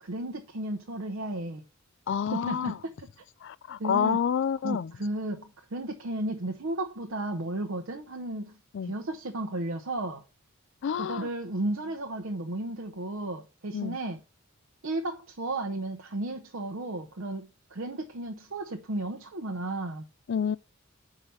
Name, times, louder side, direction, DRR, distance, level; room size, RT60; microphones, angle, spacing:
voice 1, 0.0-1.6 2.3-2.9 3.8-4.2 4.6-8.5 8.8-10.2 11.0-14.2 14.8-20.1, right 1 dB, 70° right, 0.8 m, -34 dB
voice 2, 2.1-2.8 3.4-4.9 8.7-8.9 10.8-11.3 13.7-14.0 20.3-20.6, left 7 dB, 60° left, 0.3 m, -28 dB
5.5 x 4.9 x 5.6 m
head